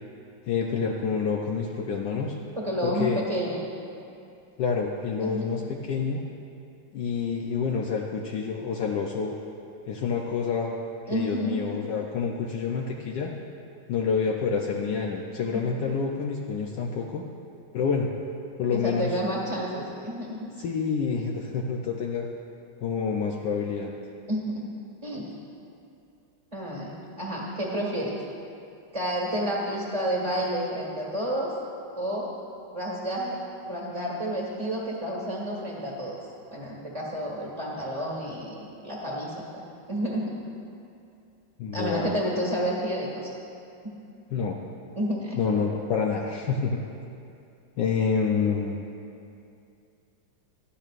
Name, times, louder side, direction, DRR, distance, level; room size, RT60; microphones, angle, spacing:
voice 1, 0.5-2.4 2.8-3.2 4.6-6.2 6.9-9.3 9.9-10.7 11.1-13.3 13.9-17.2 17.7-18.1 18.6-19.1 20.6-22.3 22.8-23.9 41.6-42.2 44.3-44.6 45.4-46.8 47.8-48.8, left 5 dB, 70° left, 0 dB, 1.3 m, -28 dB
voice 2, 2.6-3.7 5.2-5.5 11.1-11.8 18.7-20.4 24.3-24.7 25.0-25.2 26.5-28.2 28.9-31.5 32.0-32.3 32.7-33.4 33.7-39.6 39.9-40.3 41.7-43.3 43.8-43.9 44.9-45.6, equal, 20° right, -4 dB, 1.4 m, -30 dB
17.0 x 12.0 x 2.5 m, 2.6 s
omnidirectional pair, 2.1 m